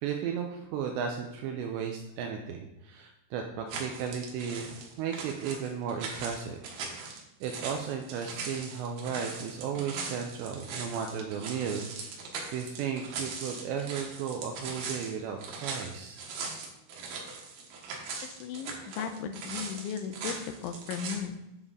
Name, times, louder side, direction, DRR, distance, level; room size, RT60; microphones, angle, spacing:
voice 1, 0.0-4.7 5.0-6.6 6.9-11.9 12.5-16.2, right 7 dB, 85° right, 3 dB, 2.6 m, -35 dB
sound 1, 3.7-21.2, right 4 dB, 65° right, 2.4 m, -40 dB
voice 2, 18.4-20.3 20.6-21.4, left 8 dB, 80° left, 8 dB, 3.0 m, -36 dB
9.6 x 7.1 x 3.7 m, 0.88 s
omnidirectional pair, 5.6 m